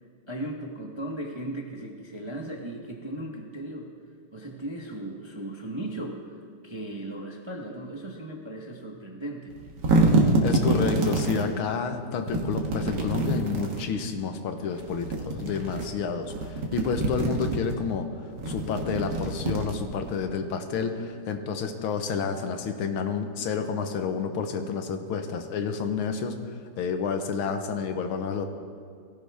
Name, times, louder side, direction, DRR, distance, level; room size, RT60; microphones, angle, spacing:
voice 1, 0.3-3.9 4.3-9.5, right 1 dB, 20° right, 0 dB, 0.7 m, -37 dB
sound 1, 9.5-11.5 12.3-13.9 14.8-15.9 16.2-17.7 18.3-20.1, right 2 dB, 55° right, 2.0 m, -26 dB
voice 2, 10.4-18.1 18.5-28.5, left 5 dB, 85° left, 6 dB, 1.8 m, -30 dB
18.0 x 16.0 x 3.5 m, 2.4 s
omnidirectional pair, 2.3 m